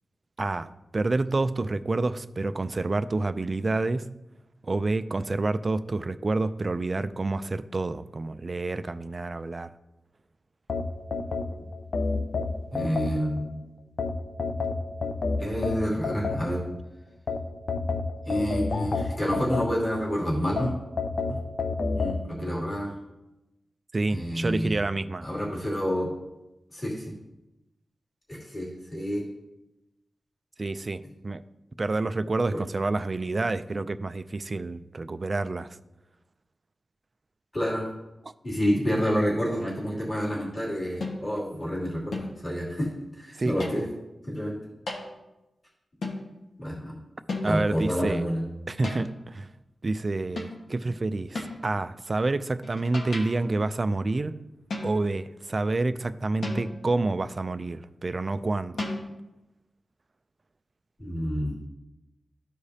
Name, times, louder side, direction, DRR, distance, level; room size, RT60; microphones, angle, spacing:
voice 1, 0.4-4.1 4.6-9.7 23.9-25.3 30.6-31.4 31.8-35.8 43.4-43.6 47.4-48.2 48.7-49.5 49.8-54.4 54.8-58.9, right 2 dB, 30° right, 0.3 m, -28 dB
sound 1, 10.7-13.5 14.0-16.8 17.3-20.1 20.6-22.2, left 4 dB, 50° left, 0.6 m, -29 dB
voice 2, 12.7-13.4 15.4-16.6 18.2-20.7 21.3-21.4 21.9-23.0 24.1-24.8 25.2-26.1 26.7-27.1 28.3-29.2 37.5-37.9 38.4-42.9 43.2-43.9 44.3-44.6 46.6-47.0 47.4-48.4 61.0-61.6, equal, 30° left, 2.7 m, -28 dB
sound 2, 41.0-41.4 42.1-42.5 43.6-44.0 44.9-45.1 46.0-46.3 47.3-47.8 48.8-49.2 50.4-50.7 51.3-51.7 52.6-53.5 54.7-55.2 56.4-57.0 58.8-59.0, left 2 dB, 75° left, 1.3 m, -35 dB
13.5 x 4.9 x 2.8 m
wide cardioid pair, 155°, 0 cm